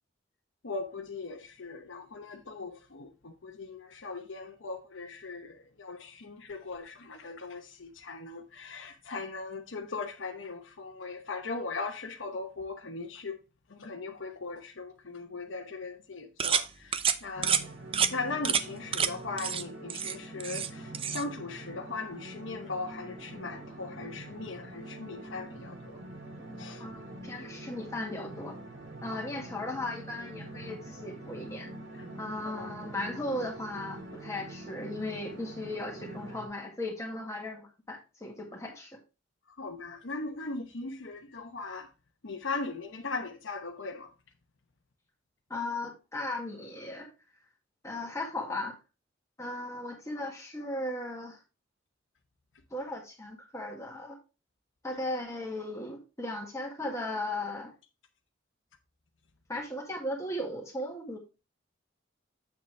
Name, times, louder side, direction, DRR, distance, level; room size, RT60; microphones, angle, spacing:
voice 1, 0.6-13.4 13.7-17.5 18.1-26.0 26.6-26.8 29.1-29.2 32.4-32.7 39.6-41.9 42.2-44.1, left 3 dB, 75° left, 0.9 m, -39 dB
Knife Sharpener, 16.4-16.7 16.9-17.2 17.4-17.6 17.9-18.1 18.4-18.6 18.9-19.1 19.4-19.6 19.9-20.7 20.9-21.2, right 7 dB, 30° right, 0.6 m, -28 dB
sound 1, 17.3-36.5, right 1 dB, 75° right, 3.0 m, -45 dB
voice 2, 26.8-28.6 29.0-31.7 32.1-39.0 45.5-47.1 47.8-48.8 49.4-51.4 52.7-54.2 54.8-57.7 59.5-61.2, left 1 dB, 15° left, 1.8 m, -37 dB
7.9 x 6.8 x 3.2 m
head